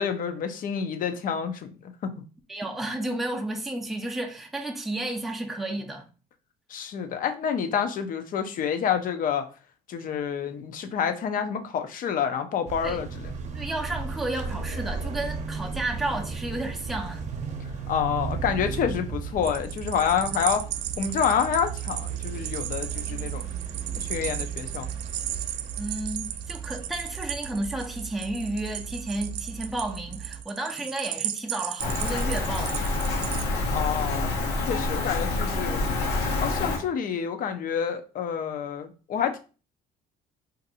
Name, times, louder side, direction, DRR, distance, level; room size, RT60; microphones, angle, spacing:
voice 1, 0.0-2.1 6.7-9.5 9.9-13.3 17.9-20.7 21.0-23.4 24.0-24.9 33.7-34.3 34.7-35.8 36.4-39.4, left 7 dB, 55° left, 0.6 m, -28 dB
voice 2, 2.5-6.1 12.8-13.0 13.5-17.3 20.3-20.4 25.8-33.0, right 1 dB, ahead, 0.5 m, -32 dB
sound 1, 12.7-30.4, right 6 dB, 45° right, 0.7 m, -35 dB
sound 2, 19.4-33.4, right 12 dB, 80° right, 0.4 m, -35 dB
Rain, 31.8-36.8, left 2 dB, 85° left, 1.1 m, -27 dB
2.6 x 2.6 x 4.1 m
cardioid pair, 110°, 17 cm